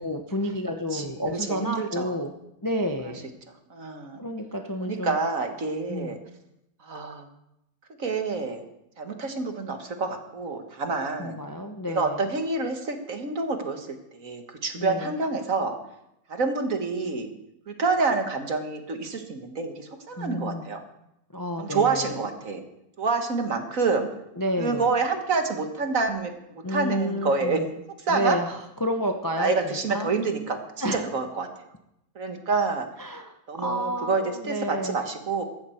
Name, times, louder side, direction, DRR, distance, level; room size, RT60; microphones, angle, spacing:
voice 1, 0.0-2.3 2.6-3.3 4.2-5.2 5.9-6.2 11.2-12.2 14.8-15.1 20.2-20.7 21.3-22.2 24.4-24.9 26.6-27.7 28.1-30.1 30.8-31.0 33.0-35.0, equal, 20° left, 4 dB, 0.5 m, -30 dB
voice 2, 0.9-2.1 3.0-3.1 3.7-4.2 4.8-6.2 6.8-7.3 8.0-8.6 9.0-11.4 11.9-15.7 16.3-17.3 17.7-20.8 21.6-22.6 23.0-24.1 24.6-27.6 28.0-28.4 29.4-31.5 32.1-32.9 33.5-35.4, right 4 dB, 45° right, 5 dB, 1.7 m, -28 dB
14.0 x 14.0 x 4.5 m, 0.83 s
omnidirectional pair, 2.2 m